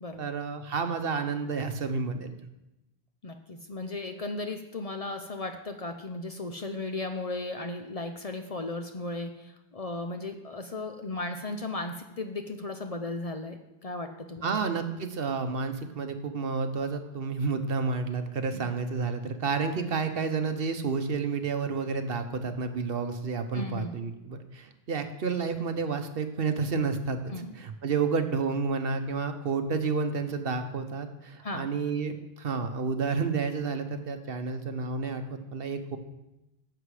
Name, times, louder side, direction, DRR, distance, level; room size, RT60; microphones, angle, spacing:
voice 1, 0.2-2.3 14.4-36.0, right 5 dB, 65° right, 8 dB, 1.1 m, -30 dB
voice 2, 3.2-14.6 18.5-18.7 23.5-23.9 27.3-27.5 31.4-31.7, left 2 dB, 40° left, 6 dB, 0.7 m, -36 dB
11.0 x 7.4 x 4.9 m, 0.95 s
omnidirectional pair, 1.1 m